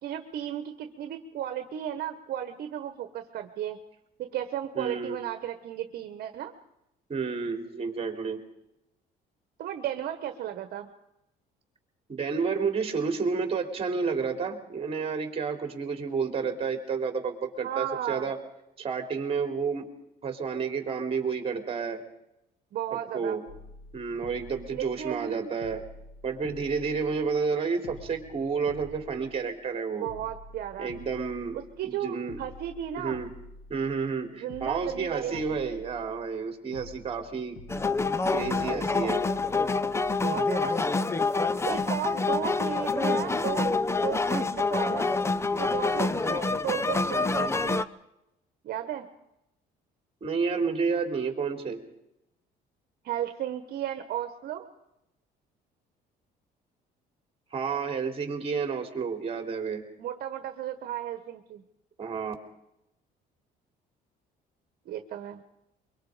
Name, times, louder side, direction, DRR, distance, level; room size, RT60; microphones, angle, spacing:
voice 1, 0.0-3.8 4.2-6.5 9.6-10.9 17.6-18.3 22.7-23.4 24.7-25.5 30.0-30.9 31.5-33.2 34.3-35.8 40.2-40.8 41.6-45.1 45.5-47.9 48.6-49.1 53.0-54.7 60.0-61.6 64.8-65.4, right 11 dB, 65° right, 7 dB, 1.4 m, -34 dB
voice 2, 4.7-5.2 7.1-8.4 12.1-18.4 18.8-19.9 20.2-22.0 23.1-23.4 23.9-25.8 26.2-30.1 30.8-31.6 31.8-32.4 33.0-33.3 33.7-37.6 38.3-39.3 50.2-51.8 57.5-59.8 62.0-62.3, right 5 dB, 35° right, 4 dB, 3.6 m, -30 dB
sound 1, 23.5-25.3 25.6-27.5 27.8-29.7 30.1-32.0 32.3-34.2 34.5-36.4 36.7-38.7, left 3 dB, 75° left, 2.7 m, -48 dB
sound 2, 37.7-47.8, left 3 dB, 15° left, 0.8 m, -27 dB
23.5 x 23.5 x 5.1 m, 0.85 s
cardioid pair, 110°, 17 cm